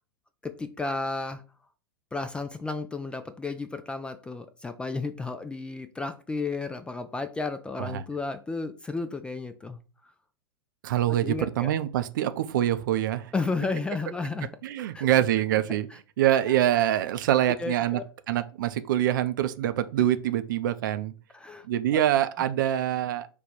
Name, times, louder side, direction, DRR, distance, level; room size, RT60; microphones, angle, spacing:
voice 1, 0.4-1.4 2.1-9.8 11.2-11.7 13.3-14.5 14.9-15.1 16.5-16.6 17.6-18.0 21.3-21.7 21.9-22.0, left 3 dB, 10° left, 0.3 m, -33 dB
voice 2, 10.8-13.3 14.6-15.9 16.2-18.0 18.3-21.1 21.7-23.3, right 12 dB, 50° right, 0.5 m, -25 dB
5.1 x 2.3 x 4.3 m
figure-of-eight pair, 100°, 13 cm